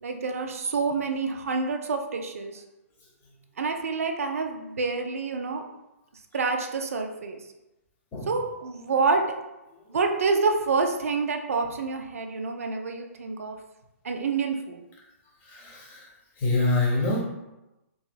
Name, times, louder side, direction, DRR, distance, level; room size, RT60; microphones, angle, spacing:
voice 1, 0.0-2.6 3.6-5.6 6.3-7.4 8.3-9.2 9.9-13.6 14.0-14.8, right 4 dB, 70° right, 4 dB, 0.4 m, -27 dB
voice 2, 15.4-16.1 16.4-17.2, left 2 dB, 25° left, -1 dB, 0.8 m, -26 dB
3.0 x 2.8 x 2.2 m, 0.97 s
figure-of-eight pair, 125°, 8 cm